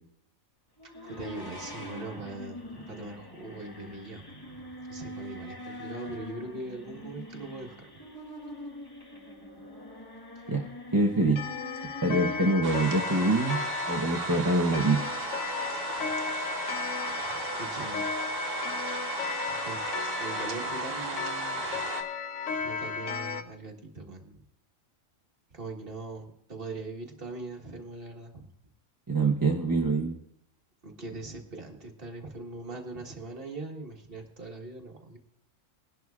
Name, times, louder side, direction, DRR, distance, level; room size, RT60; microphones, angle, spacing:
sound 1, 0.8-12.5, left 1 dB, 20° left, 1.2 m, -44 dB
voice 1, 1.0-7.8 16.0-16.1 17.2-18.1 19.5-19.8 20.2-21.8 22.6-24.4 25.5-28.5 30.8-35.2, right 2 dB, 45° right, 2 dB, 1.6 m, -41 dB
voice 2, 10.5-11.4 12.0-15.0 29.1-30.2, right 2 dB, 20° right, 1 dB, 0.6 m, -25 dB
Clock, 11.3-23.4, left 6 dB, 65° left, 1.0 m, -35 dB
sound 2, 12.6-22.0, right 4 dB, 70° right, 1.4 m, -35 dB
21.0 x 11.0 x 2.4 m, 0.75 s
omnidirectional pair, 1.4 m